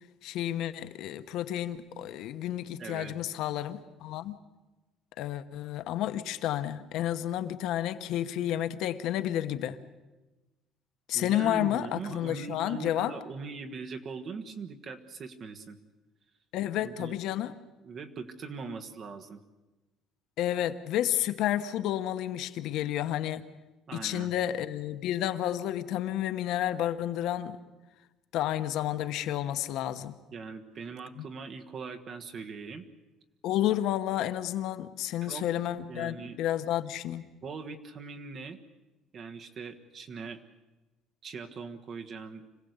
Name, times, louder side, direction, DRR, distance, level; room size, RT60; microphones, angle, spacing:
voice 1, 0.2-4.4 5.2-9.8 11.1-13.1 16.5-17.5 20.4-23.4 23.9-27.6 28.3-30.2 33.4-37.3, left 12 dB, 65° left, 10 dB, 1.1 m, -31 dB
voice 2, 2.8-3.1 11.1-15.8 16.8-17.2 17.8-19.4 23.9-24.3 30.3-32.9 35.2-35.5 35.9-36.4 37.4-38.6 39.1-40.4 41.2-42.4, right 5 dB, 35° right, 6 dB, 1.5 m, -41 dB
26.0 x 17.0 x 8.1 m, 1.1 s
cardioid pair, 165°, 0 cm